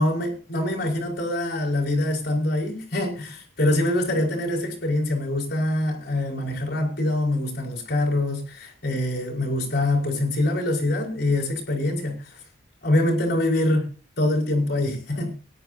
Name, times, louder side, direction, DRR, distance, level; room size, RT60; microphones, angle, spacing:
voice 1, 0.0-12.4 12.8-13.9 14.2-15.3, left 1 dB, 55° left, 1 dB, 5.3 m, -24 dB
23.0 x 11.0 x 2.8 m, 0.36 s
head